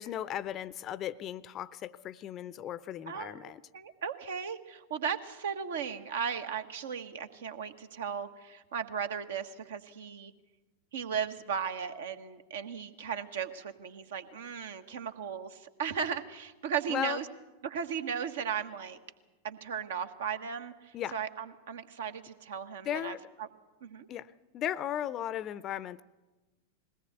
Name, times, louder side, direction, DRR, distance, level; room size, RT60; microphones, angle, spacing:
voice 1, 0.0-3.6 16.9-17.2 20.9-21.1 22.9-23.2 24.1-26.0, left 11 dB, 30° left, 19 dB, 0.6 m, -36 dB
voice 2, 3.1-10.3 10.9-17.3 17.6-19.0 19.4-23.5 23.8-24.1, right 7 dB, 60° right, 8 dB, 1.4 m, -36 dB
21.0 x 18.0 x 8.1 m, 1.1 s
figure-of-eight pair, 90°, 0 cm